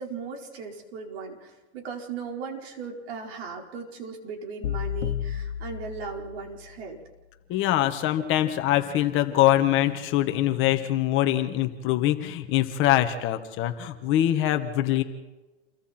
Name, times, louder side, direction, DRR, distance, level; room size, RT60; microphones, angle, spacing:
voice 1, 0.0-7.0, right 5 dB, 65° right, 1 dB, 4.9 m, -37 dB
sound 1, 4.6-6.8, left 10 dB, 90° left, 1.6 m, -32 dB
voice 2, 7.5-15.0, left 13 dB, 35° left, 8 dB, 1.6 m, -23 dB
28.5 x 23.0 x 4.5 m, 1.1 s
supercardioid pair, 140°, 34 cm